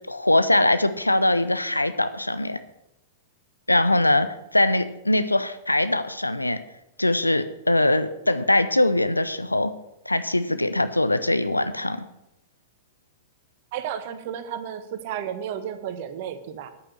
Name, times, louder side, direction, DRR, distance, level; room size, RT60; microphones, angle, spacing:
voice 1, 0.1-2.6 3.7-6.6 7.0-9.7 10.1-12.0, left 1 dB, 85° left, 12 dB, 0.7 m, -22 dB
voice 2, 13.7-16.7, right 9 dB, 50° right, 10 dB, 1.2 m, -32 dB
10.0 x 8.8 x 6.4 m, 0.86 s
figure-of-eight pair, 100°, 0 cm